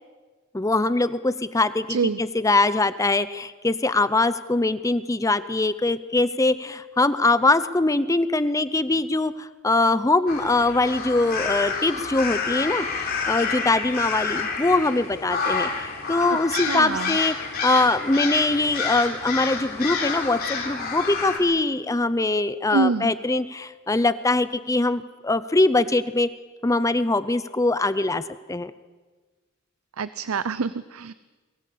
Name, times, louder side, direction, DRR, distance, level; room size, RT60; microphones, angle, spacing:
voice 1, 0.5-17.3 17.6-26.3 26.6-28.2 28.5-28.7, left 2 dB, 15° left, 14 dB, 0.6 m, -22 dB
voice 2, 1.9-2.2 16.5-17.2 22.7-23.1 30.0-31.1, right 4 dB, 85° right, 15 dB, 0.6 m, -26 dB
sound 1, 10.3-21.4, left 5 dB, 45° left, 4.2 m, -29 dB
23.0 x 18.0 x 8.5 m, 1.3 s
head